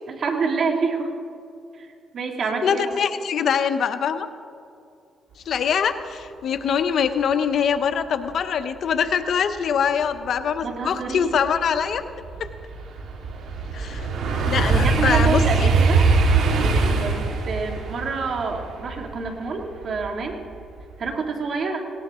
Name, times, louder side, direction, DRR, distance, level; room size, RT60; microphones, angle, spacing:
voice 1, 0.1-1.1 1.8-1.9 2.1-3.0 10.6-11.3 14.7-16.1 16.5-20.4 21.0-21.8, right 4 dB, 55° right, 2 dB, 2.3 m, -27 dB
voice 2, 2.6-4.3 5.5-12.0 13.7-14.1 14.4-15.7, left 7 dB, 65° left, 9 dB, 0.9 m, -23 dB
sound 1, 10.7-10.8 11.2-20.3 20.7-21.1, right 4 dB, 70° right, 2.4 m, -22 dB
18.5 x 18.5 x 3.7 m, 2.4 s
cardioid pair, 90°, 0 cm